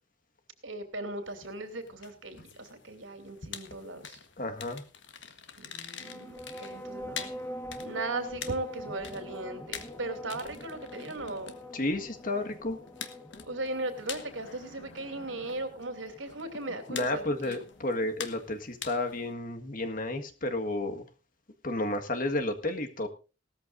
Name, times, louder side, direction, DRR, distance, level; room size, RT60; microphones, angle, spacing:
voice 1, 0.6-4.2 5.6-7.3 7.8-11.6 13.5-17.6, right 2 dB, 80° right, 8 dB, 2.9 m, -37 dB
sound 1, 1.2-19.3, left 7 dB, 70° left, 1.4 m, -46 dB
voice 2, 4.4-4.8 11.7-12.8 16.9-21.1 21.6-23.1, left 2 dB, 45° left, 6 dB, 1.7 m, -32 dB
sound 2, 5.9-17.8, equal, 15° left, 1.6 m, -45 dB
18.0 x 13.5 x 2.6 m, 0.32 s
head